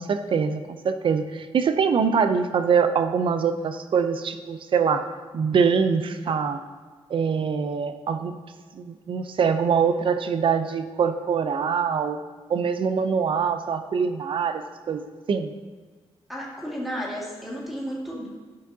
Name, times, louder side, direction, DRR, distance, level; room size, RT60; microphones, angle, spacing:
voice 1, 0.0-5.0 5.3-6.6 7.1-8.3 8.7-12.2 12.5-15.5, right 6 dB, 60° right, 9 dB, 0.6 m, -24 dB
voice 2, 16.3-18.3, equal, ahead, -7 dB, 2.0 m, -33 dB
12.0 x 5.1 x 2.7 m, 1.5 s
cardioid pair, 105°, 10 cm